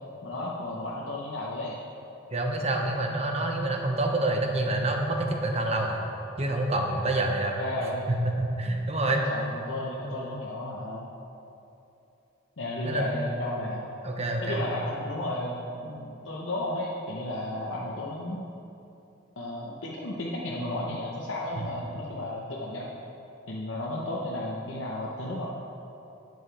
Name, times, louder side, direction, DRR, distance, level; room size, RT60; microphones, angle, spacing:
voice 1, 0.2-1.8 7.6-8.0 9.0-11.1 12.6-13.8 14.4-18.4 19.4-23.0 23.5-25.5, left 1 dB, 90° left, -4 dB, 0.9 m, -33 dB
voice 2, 2.3-6.0 6.4-7.6 8.1-9.2 10.0-10.1 12.8-13.1 14.0-14.6 21.6-21.7, right 2 dB, 35° right, 2 dB, 1.0 m, -27 dB
11.5 x 8.1 x 3.4 m, 2.8 s
head